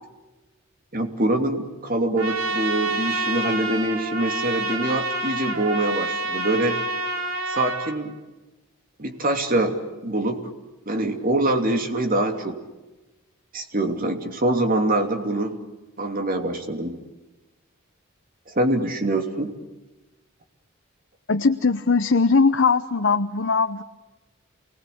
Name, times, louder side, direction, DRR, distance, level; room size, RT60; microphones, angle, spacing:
voice 1, 0.9-6.8 7.5-8.1 9.0-10.4 10.9-12.6 13.5-15.6 16.0-17.0 18.5-19.5, right 1 dB, 45° right, 5 dB, 2.9 m, -24 dB
Trumpet, 2.2-7.9, right 2 dB, 85° right, 3.5 m, -28 dB
voice 2, 21.3-23.8, left 4 dB, 60° left, 7 dB, 0.9 m, -20 dB
28.0 x 20.0 x 8.6 m, 1.1 s
head